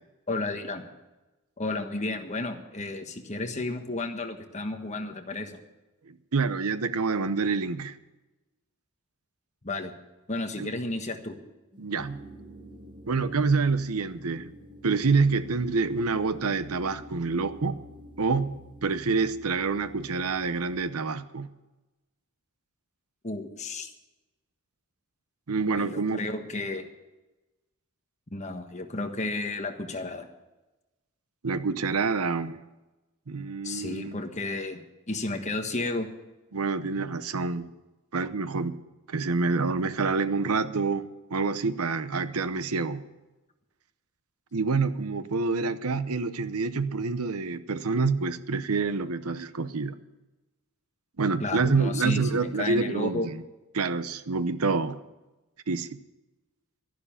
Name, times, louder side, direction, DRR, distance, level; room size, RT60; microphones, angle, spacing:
voice 1, 0.3-0.9 1.6-5.6 9.6-9.9 10.3-11.4 23.2-23.9 25.7-26.9 28.3-30.3 33.6-34.8 35.1-36.1 51.4-53.3, left 2 dB, 30° left, 5 dB, 1.4 m, -32 dB
voice 2, 6.1-8.0 10.6-10.7 11.8-12.2 13.1-14.5 14.8-17.8 18.2-21.5 25.5-26.2 31.4-32.6 33.3-34.2 36.5-37.7 38.1-38.8 39.1-41.0 41.3-43.0 44.5-50.0 51.2-53.4 53.7-55.0 55.7-56.0, right 4 dB, 75° right, 13 dB, 0.8 m, -27 dB
sound 1, 11.7-20.9, equal, 20° right, 1.0 m, -48 dB
13.0 x 11.0 x 7.2 m, 1.1 s
head